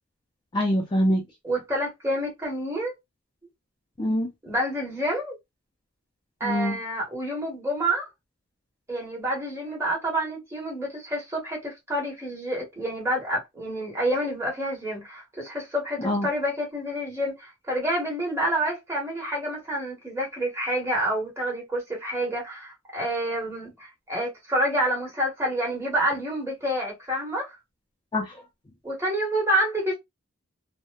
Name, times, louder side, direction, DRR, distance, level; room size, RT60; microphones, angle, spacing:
voice 1, 0.5-1.2 4.0-4.3 6.4-6.8 16.0-16.3 28.1-28.4, equal, 25° left, 0.4 m, -24 dB
voice 2, 1.4-2.9 4.4-5.4 6.4-8.1 8.9-27.5 28.8-30.0, right 1 dB, 15° right, 1.1 m, -28 dB
2.8 x 2.1 x 2.2 m
head